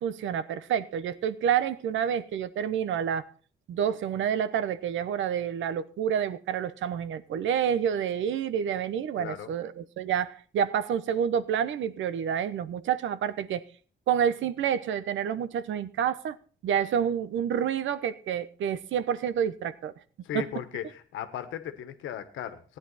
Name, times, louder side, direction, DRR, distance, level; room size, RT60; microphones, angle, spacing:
voice 1, 0.0-3.3 3.7-13.6 14.1-16.4 16.6-19.9 20.3-20.4, right 8 dB, 75° right, 1.0 m, -28 dB
voice 2, 9.2-9.5 20.2-22.8, left 10 dB, 85° left, 1.5 m, -37 dB
16.0 x 10.0 x 4.1 m
cardioid pair, 90°, 20 cm